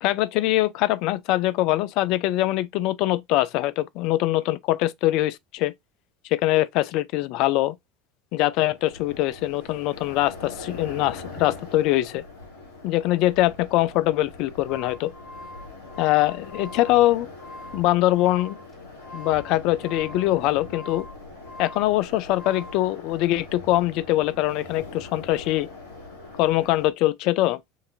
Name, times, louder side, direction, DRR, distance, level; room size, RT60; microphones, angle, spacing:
voice 1, 0.0-5.7 6.3-7.7 8.3-12.2 12.8-15.1 16.0-17.3 17.7-18.6 19.1-21.1 21.6-25.7 26.4-27.6, left 16 dB, 55° left, 0.4 m, -23 dB
sound 1, 8.6-26.9, left 3 dB, 80° left, 1.7 m, -42 dB
sound 2, 14.4-22.9, left 1 dB, 25° left, 1.5 m, -44 dB
6.4 x 2.6 x 2.5 m
figure-of-eight pair, 75°, 0 cm